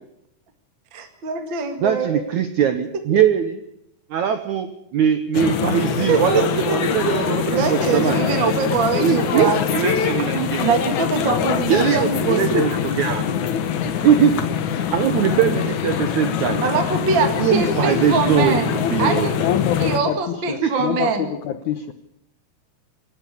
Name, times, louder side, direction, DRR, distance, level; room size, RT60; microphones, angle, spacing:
voice 1, 0.9-2.2 6.1-6.4 6.9-7.0 7.4-9.6 10.6-12.6 16.6-19.4 19.8-21.3, right 5 dB, 40° right, 5 dB, 2.1 m, -23 dB
voice 2, 1.8-3.6 4.1-8.2 8.9-10.7 11.7-13.3 13.9-14.4 14.7-16.6 17.4-19.3 20.6-20.7, right 9 dB, 75° right, 8 dB, 1.8 m, -21 dB
sound 1, 5.3-20.0, left 8 dB, 60° left, 2.2 m, -23 dB
voice 3, 18.3-21.9, left 10 dB, 85° left, 10 dB, 1.7 m, -26 dB
26.5 x 12.0 x 8.5 m, 0.79 s
omnidirectional pair, 4.7 m